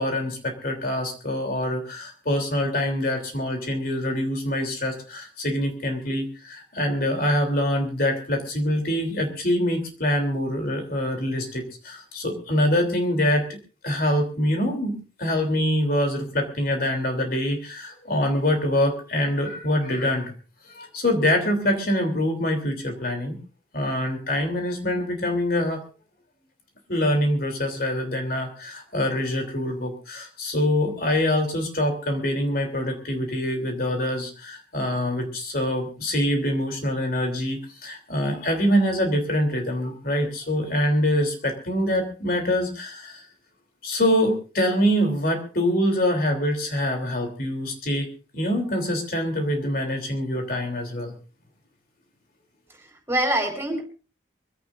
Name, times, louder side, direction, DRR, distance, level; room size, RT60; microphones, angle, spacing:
voice 1, 0.0-13.6 13.8-20.3 20.6-23.4 23.7-25.8 26.9-43.2 43.8-48.1 48.3-51.1, left 1 dB, 50° left, 3 dB, 3.5 m, -25 dB
voice 2, 52.7-53.8, right 1 dB, 15° right, 3 dB, 4.9 m, -25 dB
24.5 x 16.5 x 2.7 m, 0.34 s
head